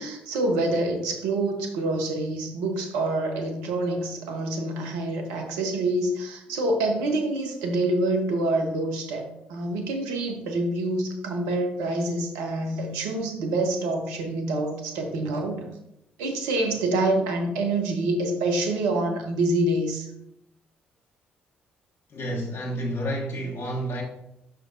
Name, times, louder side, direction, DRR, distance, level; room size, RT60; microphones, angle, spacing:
voice 1, 0.0-15.7 16.2-20.1, right 2 dB, 80° right, 3 dB, 1.1 m, -26 dB
voice 2, 22.1-24.0, right 1 dB, 50° left, -2 dB, 1.2 m, -30 dB
7.0 x 6.0 x 2.7 m, 0.83 s
hypercardioid pair, 45°, 5 cm